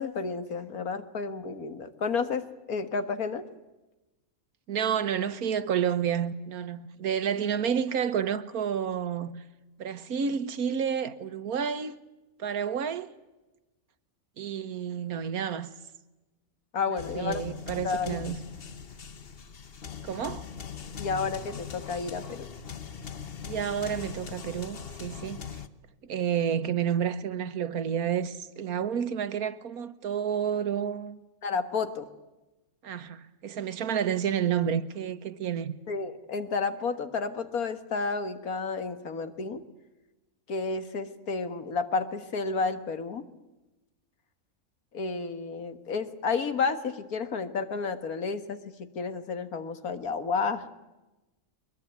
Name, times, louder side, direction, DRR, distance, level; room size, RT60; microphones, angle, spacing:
voice 1, 0.0-3.4 16.7-17.4 17.8-18.2 21.0-22.5 31.4-32.1 35.9-39.6 40.5-43.2 44.9-50.6, left 4 dB, 80° left, 2.1 m, -31 dB
voice 2, 4.7-9.4 9.8-12.0 12.4-13.1 14.4-15.7 16.9-18.4 20.0-20.4 23.5-25.4 26.0-31.2 32.8-35.7, right 8 dB, 85° right, 1.6 m, -30 dB
sound 1, 17.0-25.7, left 7 dB, 45° left, 1.2 m, -41 dB
22.0 x 21.5 x 9.4 m
omnidirectional pair, 1.5 m